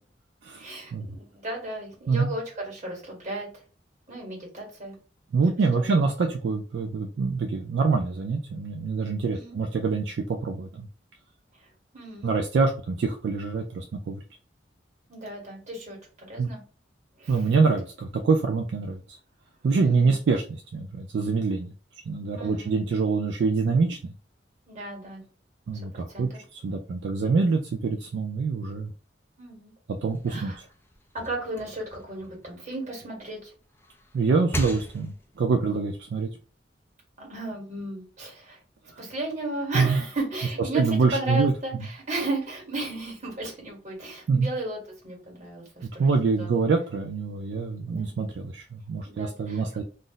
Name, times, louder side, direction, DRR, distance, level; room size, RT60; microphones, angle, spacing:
voice 1, 0.5-3.5 4.1-5.0 5.8-6.0 9.3-9.6 11.9-12.3 15.1-16.6 17.2-17.4 19.8-20.1 22.4-22.8 24.7-25.2 25.9-26.4 29.4-29.7 30.3-30.6 31.1-33.5 37.2-38.6 39.0-44.8 45.0-46.1 46.4-46.6 47.9-48.1 49.0-49.6, right 1 dB, 40° right, -1 dB, 1.3 m, -35 dB
voice 2, 5.3-10.9 12.2-14.2 16.4-16.5 17.3-19.2 19.6-21.7 22.1-24.1 25.7-28.9 29.9-30.5 34.1-36.3 39.7-40.0 40.7-41.5 44.3-44.5 45.8-49.8, right 4 dB, 70° right, 3 dB, 0.4 m, -25 dB
sound 1, 30.0-33.2 33.6-35.4, left 1 dB, 10° left, 0.4 m, -39 dB
2.5 x 2.0 x 3.8 m, 0.38 s
head